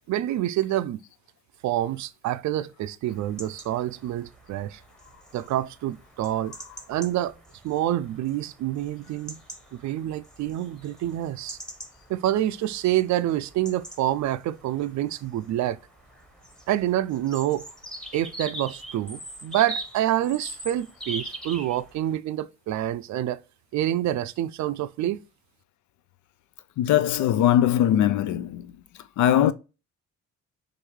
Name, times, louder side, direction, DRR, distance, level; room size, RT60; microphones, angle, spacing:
voice 1, 0.1-1.0 1.6-4.8 5.3-6.5 6.9-7.3 7.6-9.4 9.7-11.6 12.1-15.8 16.7-17.7 18.1-23.4 23.7-25.2, right 13 dB, 70° right, 0.4 m, -27 dB
sound 1, 3.0-22.2, right 1 dB, ahead, 1.1 m, -43 dB
voice 2, 26.8-28.7 29.2-29.5, left 11 dB, 75° left, 0.5 m, -21 dB
6.3 x 2.6 x 3.1 m
cardioid pair, 90°, 30 cm